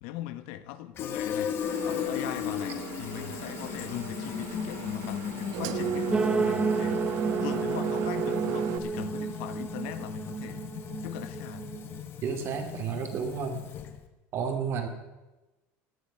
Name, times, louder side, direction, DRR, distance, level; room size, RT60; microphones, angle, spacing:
voice 1, 0.0-1.5 1.8-7.1 7.4-10.7 11.0-11.7, left 13 dB, 85° left, 12 dB, 1.0 m, -40 dB
Fill (with liquid), 1.0-14.1, left 9 dB, 40° left, 1.3 m, -36 dB
Engine, 1.6-8.8, right 10 dB, 70° right, 0.9 m, -35 dB
sound 1, 6.1-12.0, right 4 dB, 15° right, 0.7 m, -31 dB
voice 2, 12.2-13.6 14.3-14.9, right 6 dB, 45° right, 5 dB, 2.3 m, -31 dB
17.0 x 10.5 x 5.7 m, 1.1 s
cardioid pair, 145°, 6 cm